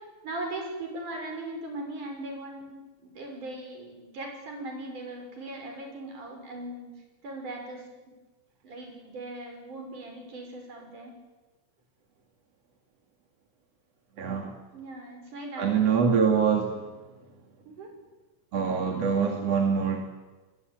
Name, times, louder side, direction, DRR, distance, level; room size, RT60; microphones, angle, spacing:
voice 1, 0.2-2.7 3.0-6.9 7.2-7.8 8.6-11.1 14.7-15.8 17.7-17.9, right 2 dB, 70° right, 3 dB, 7.5 m, -39 dB
voice 2, 14.2-14.6 15.6-16.8 18.5-20.0, right 6 dB, 55° right, 3 dB, 3.2 m, -24 dB
25.5 x 21.0 x 9.2 m, 1.2 s
omnidirectional pair, 3.7 m